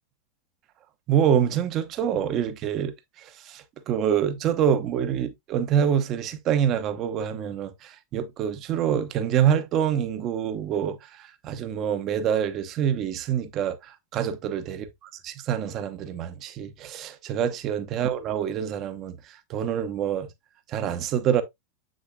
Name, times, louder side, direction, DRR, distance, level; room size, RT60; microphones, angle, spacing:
voice 1, 1.1-2.9 3.5-11.0 11.4-14.9 15.2-19.2 19.5-20.3 20.7-21.4, right 9 dB, 35° right, 0.9 m, -26 dB
7.7 x 6.3 x 2.2 m
figure-of-eight pair, 90°, 0 cm